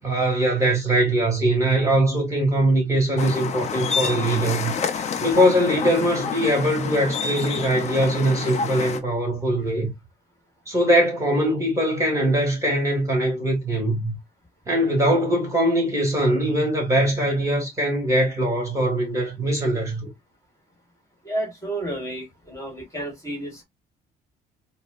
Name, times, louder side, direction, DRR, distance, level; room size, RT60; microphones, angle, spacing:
voice 1, 0.0-4.7 5.2-9.9 10.7-14.2 14.7-20.1, right 1 dB, 20° right, 1.8 m, -21 dB
sound 1, 3.2-9.0, left 6 dB, 40° left, 0.6 m, -28 dB
voice 2, 21.2-23.6, right 1 dB, 20° left, 1.6 m, -31 dB
4.1 x 2.1 x 2.4 m
cardioid pair, 110°, 17 cm